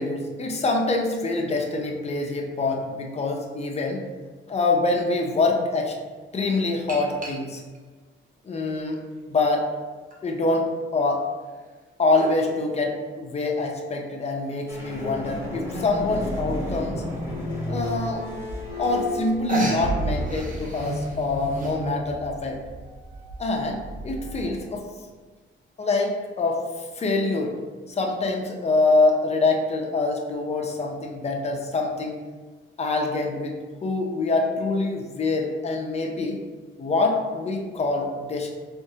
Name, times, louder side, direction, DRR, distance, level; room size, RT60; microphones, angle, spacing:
voice 1, 0.0-4.0 4.5-5.9 6.3-7.6 8.4-9.0 9.3-9.7 10.2-10.7 10.9-11.2 12.0-17.0 17.7-18.3 18.8-22.6 23.4-24.9 25.8-27.6 27.9-32.1 32.8-36.4 36.8-38.5, left 3 dB, 30° left, 1 dB, 0.5 m, -25 dB
sound 1, 6.9-7.8 8.5-9.5 10.1-10.2 11.4-12.4 14.1-14.2 14.7-14.8 15.0-15.1 15.4-15.7 16.7-16.8 17.3-17.4 18.5-18.6 18.8-19.2 19.5-21.8, right 1 dB, 40° right, 0.8 m, -34 dB
sound 2, 14.7-24.8, equal, 10° right, 1.1 m, -32 dB
3.5 x 3.5 x 2.7 m, 1.4 s
wide cardioid pair, 140°, 21 cm